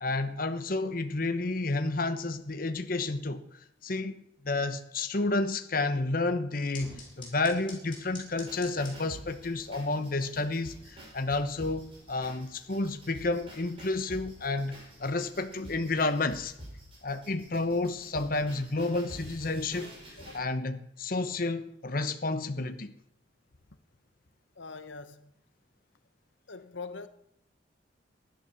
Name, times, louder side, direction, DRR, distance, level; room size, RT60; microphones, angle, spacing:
voice 1, 0.0-14.7 15.0-16.5 17.0-19.9 20.3-22.9, left 2 dB, 50° left, 1.0 m, -31 dB
sound 1, 6.7-15.4, left 3 dB, 30° left, 6.6 m, -52 dB
sound 2, 8.4-20.4, equal, 30° right, 6.7 m, -48 dB
voice 2, 24.6-25.3 26.5-27.1, left 4 dB, 80° left, 1.1 m, -43 dB
16.0 x 11.5 x 7.1 m
head